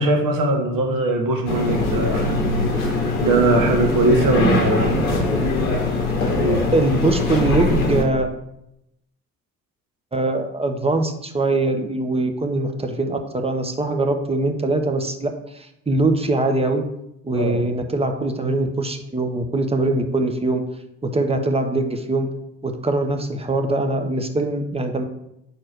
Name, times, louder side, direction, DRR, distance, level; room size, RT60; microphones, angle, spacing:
voice 1, 0.0-5.0 6.4-6.7 17.3-17.6, right 2 dB, 50° right, 2 dB, 1.5 m, -21 dB
sound 1, 1.5-8.0, left 2 dB, 85° left, 0.8 m, -21 dB
voice 2, 6.7-8.3 10.1-16.8 17.2-20.6 21.0-22.3 22.6-25.0, right 2 dB, 15° right, 5 dB, 1.0 m, -22 dB
5.2 x 4.4 x 6.0 m, 0.81 s
figure-of-eight pair, 45°, 41 cm